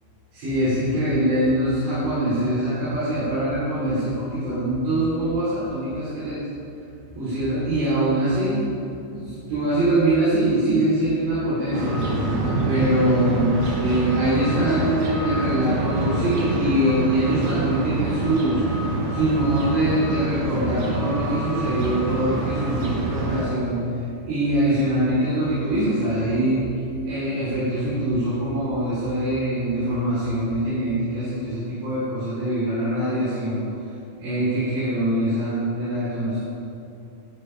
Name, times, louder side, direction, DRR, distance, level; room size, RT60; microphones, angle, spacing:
voice 1, 0.3-6.4 7.1-8.6 9.1-12.0 12.6-18.6 19.1-23.8 24.2-26.7 27.0-33.6 34.2-36.4, right 1 dB, 75° right, -11 dB, 6.8 m, -23 dB
sound 1, 11.7-23.4, right 2 dB, 50° right, 2.6 m, -26 dB
16.5 x 13.0 x 5.3 m, 2.6 s
omnidirectional pair, 5.1 m